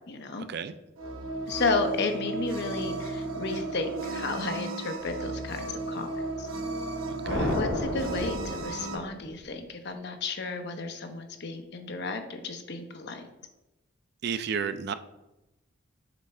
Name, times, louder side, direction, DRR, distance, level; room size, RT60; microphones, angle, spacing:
voice 1, 0.1-0.5 1.5-6.5 7.5-13.2, left 3 dB, 55° left, 6 dB, 0.7 m, -33 dB
sound 1, 1.0-9.0, right 2 dB, 85° right, 1.0 m, -34 dB
voice 2, 7.1-7.6 14.2-14.9, right 6 dB, 55° right, 12 dB, 0.3 m, -32 dB
sound 2, 7.2-9.5, left 1 dB, 85° left, 1.1 m, -32 dB
7.1 x 3.3 x 4.2 m, 0.96 s
head